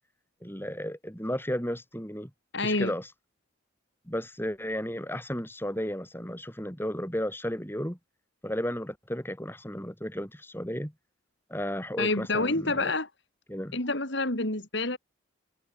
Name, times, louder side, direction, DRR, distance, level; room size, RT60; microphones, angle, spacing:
voice 1, 0.4-2.3 2.6-3.1 4.1-8.0 8.4-10.9 11.5-12.9 13.5-13.8, equal, 10° left, 6.1 m, -33 dB
voice 2, 2.5-2.9 12.0-13.1 13.7-15.0, left 2 dB, 55° left, 3.7 m, -28 dB
head